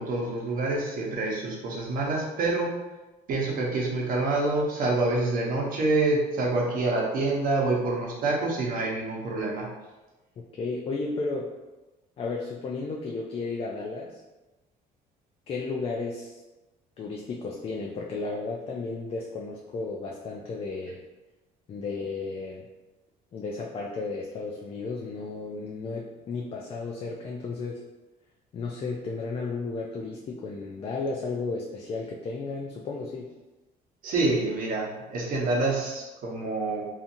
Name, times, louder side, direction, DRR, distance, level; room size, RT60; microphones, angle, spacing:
voice 1, 0.0-2.7 3.3-9.7 34.0-36.8, right 2 dB, 55° right, -2 dB, 0.8 m, -27 dB
voice 2, 10.6-11.5 12.2-14.2 15.5-16.4 17.0-21.0 21.7-22.7 23.3-27.8 28.5-33.3, left 3 dB, 35° left, -1 dB, 0.3 m, -33 dB
2.7 x 2.5 x 2.6 m, 1.1 s
cardioid pair, 110°, 17 cm